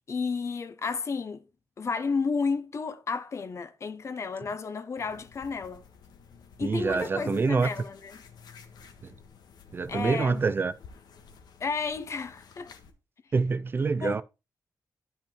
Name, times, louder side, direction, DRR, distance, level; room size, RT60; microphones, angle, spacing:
voice 1, 0.1-1.4 1.8-5.8 6.6-8.2 9.9-10.4 11.6-12.7 14.0-14.2, left 4 dB, 45° left, 0.9 m, -32 dB
Putting on Foundation, 5.0-12.9, left 6 dB, 85° left, 1.5 m, -52 dB
voice 2, 6.6-7.7 9.0-9.1 9.7-10.7 13.3-14.2, right 4 dB, 30° right, 0.4 m, -26 dB
10.5 x 5.4 x 4.4 m
wide cardioid pair, 155°, 7 cm